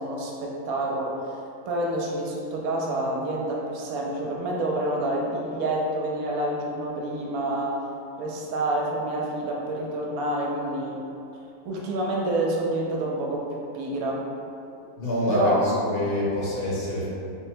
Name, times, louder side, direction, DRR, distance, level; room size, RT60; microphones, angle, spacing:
voice 1, 0.0-1.4 1.7-7.9 8.2-11.0 11.6-14.3 15.3-15.6, right 1 dB, 75° right, -2 dB, 1.0 m, -28 dB
voice 2, 15.0-17.1, left 1 dB, 45° left, -7 dB, 1.0 m, -25 dB
3.7 x 2.1 x 4.3 m, 2.6 s
omnidirectional pair, 1.6 m